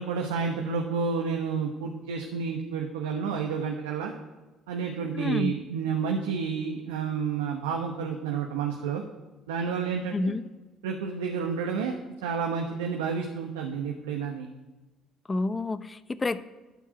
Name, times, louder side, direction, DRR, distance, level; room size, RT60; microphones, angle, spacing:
voice 1, 0.0-4.1 4.7-9.0 9.5-10.3 10.8-11.9 12.2-14.5, right 6 dB, 85° right, 2 dB, 1.0 m, -30 dB
voice 2, 5.1-5.5 10.1-10.4 15.3-16.4, left 3 dB, 25° left, 13 dB, 0.7 m, -29 dB
12.0 x 4.8 x 8.0 m, 1.2 s
hypercardioid pair, 60°, 0 cm